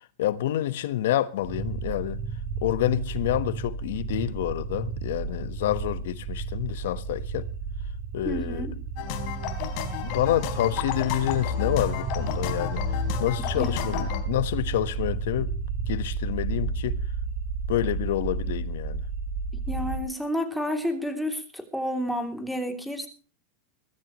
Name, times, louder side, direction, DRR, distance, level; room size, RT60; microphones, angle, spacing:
voice 1, 0.2-2.2 2.6-7.5 8.1-8.7 10.0-15.5 15.9-17.0 17.7-19.1, left 13 dB, 75° left, 1.3 m, -28 dB
sound 1, 1.4-20.0, right 5 dB, 45° right, 5.8 m, -32 dB
voice 2, 8.2-8.7 13.6-13.7 19.7-23.1, equal, ahead, 3.1 m, -30 dB
sound 2, 9.0-14.2, left 9 dB, 50° left, 3.8 m, -31 dB
23.0 x 13.5 x 3.1 m
supercardioid pair, 145°, 0 cm